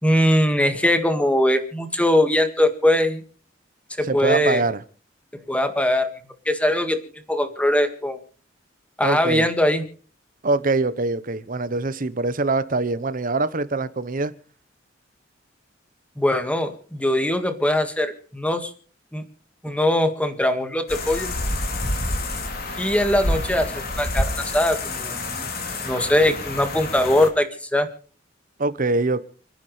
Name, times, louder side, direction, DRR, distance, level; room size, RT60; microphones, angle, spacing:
voice 1, 0.0-3.2 4.0-4.6 5.5-6.1 6.5-7.0 7.3-8.2 9.0-9.8 16.2-18.7 19.1-19.2 19.6-21.3 22.8-25.5 25.8-27.9, left 1 dB, 5° left, 7 dB, 1.8 m, -21 dB
voice 2, 4.1-4.8 9.0-9.5 10.4-14.3 28.6-29.2, right 3 dB, 45° right, 14 dB, 1.0 m, -23 dB
sound 1, 20.9-27.3, left 2 dB, 55° left, 3.2 m, -28 dB
29.5 x 10.0 x 3.3 m, 0.43 s
head